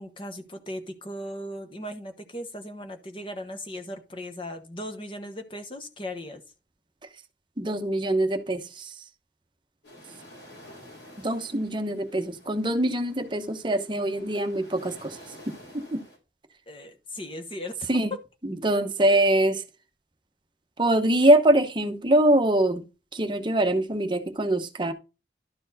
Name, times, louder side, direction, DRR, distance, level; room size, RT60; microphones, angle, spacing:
voice 1, 0.0-6.4 16.7-18.2, left 1 dB, 30° left, 1.2 m, -37 dB
voice 2, 7.6-8.9 11.2-15.2 15.7-16.0 17.9-18.1 18.6-19.6 20.8-22.8 23.1-24.9, right 1 dB, 25° right, 0.8 m, -23 dB
sound 1, 9.8-16.2, equal, 75° left, 4.8 m, -50 dB
12.0 x 4.5 x 4.0 m
head